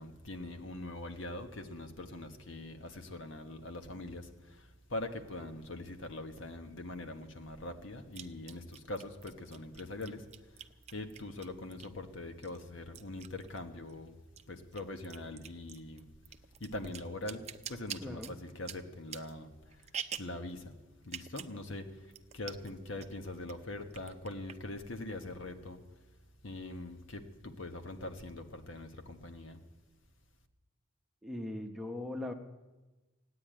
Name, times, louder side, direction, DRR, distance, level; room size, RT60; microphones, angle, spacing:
voice 1, 0.0-14.2 14.5-16.2 16.6-19.9 20.2-25.8 26.4-29.6, left 2 dB, 70° left, 6 dB, 1.3 m, -43 dB
sound 1, 6.4-6.5 8.1-12.1 12.4-14.0 14.2-20.4 21.0-21.6 21.8-21.9 22.1-22.7 23.0-23.5 23.9-24.8, right 8 dB, 30° right, 0.5 m, -46 dB
voice 2, 18.0-18.3 31.2-32.3, left 1 dB, ahead, 2 dB, 0.9 m, -39 dB
16.5 x 9.9 x 8.9 m, 1.2 s
head